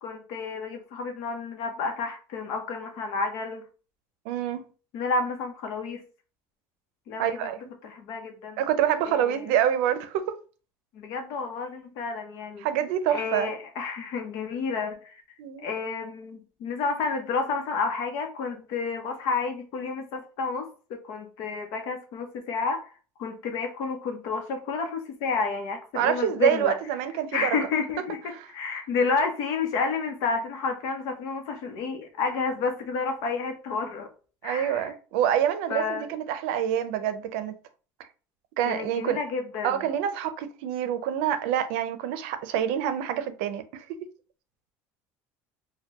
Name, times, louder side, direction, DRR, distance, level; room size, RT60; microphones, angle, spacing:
voice 1, 0.0-3.6 4.9-6.0 7.1-7.5 7.8-8.6 9.0-9.5 10.9-12.7 13.1-15.2 15.6-22.8 23.2-26.8 27.3-34.1 34.4-34.9 35.7-36.1 38.6-39.8, left 4 dB, 65° left, 0.9 m, -30 dB
voice 2, 4.3-4.6 7.2-7.6 8.6-10.3 12.6-13.5 15.4-15.7 25.9-27.6 28.3-28.5 34.4-37.5 38.6-39.2 39.6-44.0, right 10 dB, 85° right, 0.5 m, -26 dB
4.3 x 2.2 x 2.9 m
cardioid pair, 150°, 7 cm